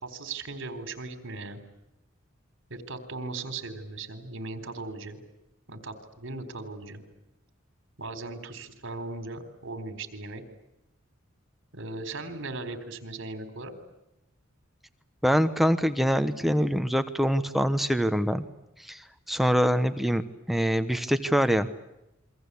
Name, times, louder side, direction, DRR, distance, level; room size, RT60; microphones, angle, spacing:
voice 1, 0.0-1.6 2.7-5.2 5.7-7.0 8.0-10.4 11.7-13.7, right 3 dB, 65° right, 9 dB, 4.0 m, -38 dB
voice 2, 15.2-18.4 18.8-19.0 19.3-20.2 20.5-21.7, equal, ahead, 9 dB, 1.0 m, -24 dB
28.5 x 23.5 x 8.4 m, 0.90 s
head